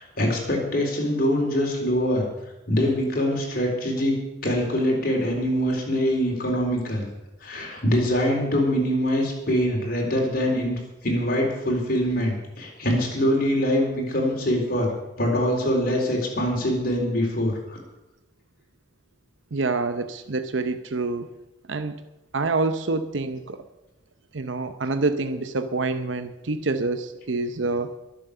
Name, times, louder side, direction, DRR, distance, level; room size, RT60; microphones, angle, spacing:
voice 1, 0.0-2.2 2.7-4.2 4.4-7.1 7.4-14.9 15.2-17.8, equal, 50° left, 0 dB, 4.2 m, -24 dB
voice 2, 19.5-21.3 21.7-22.0 22.3-23.6 24.3-28.0, right 3 dB, 70° right, 10 dB, 0.8 m, -27 dB
22.0 x 7.5 x 6.7 m, 0.96 s
head